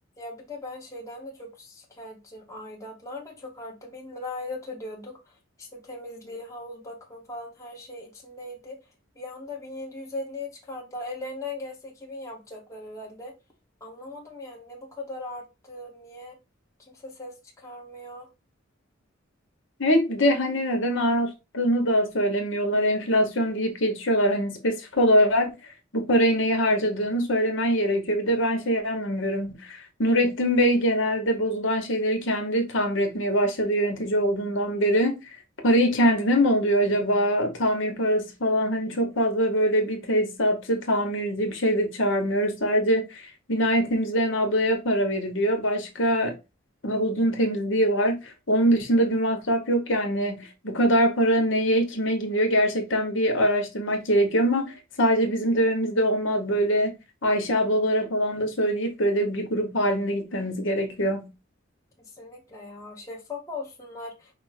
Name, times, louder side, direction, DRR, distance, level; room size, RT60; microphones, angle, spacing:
voice 1, 0.2-5.2 5.6-8.8 9.2-13.3 13.8-16.4 16.9-18.3 62.2-64.3, left 2 dB, 15° left, 1.0 m, -39 dB
voice 2, 19.8-25.5 25.9-35.2 35.6-46.4 46.8-61.3, equal, 65° left, 1.2 m, -23 dB
5.1 x 2.1 x 4.8 m
head